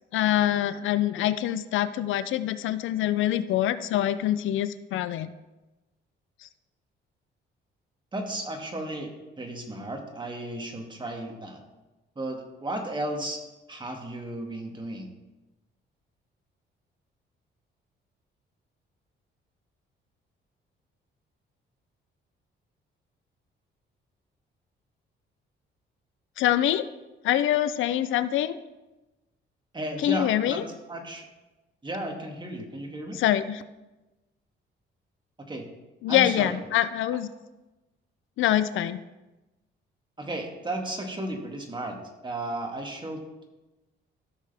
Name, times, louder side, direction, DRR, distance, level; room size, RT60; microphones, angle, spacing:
voice 1, 0.1-5.3 6.4-6.5 26.4-26.9 27.2-28.6 30.0-30.6 33.1-33.6 36.0-37.3 38.4-39.0, left 12 dB, 80° left, 14 dB, 0.5 m, -25 dB
voice 2, 8.1-11.6 12.2-13.4 13.7-15.1 29.7-31.3 31.8-33.2 35.4-35.7 36.1-36.6 40.2-42.0 42.2-43.2, right 1 dB, 25° right, 2 dB, 1.9 m, -34 dB
15.0 x 6.4 x 3.5 m, 1.1 s
cardioid pair, 90°, 20 cm